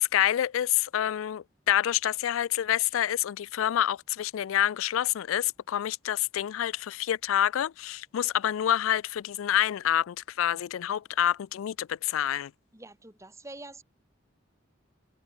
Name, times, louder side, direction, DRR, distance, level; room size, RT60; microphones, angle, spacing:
voice 1, 0.0-12.5, left 11 dB, 80° left, 0.3 m, -27 dB
voice 2, 12.7-13.8, right 2 dB, 15° right, 1.6 m, -45 dB
head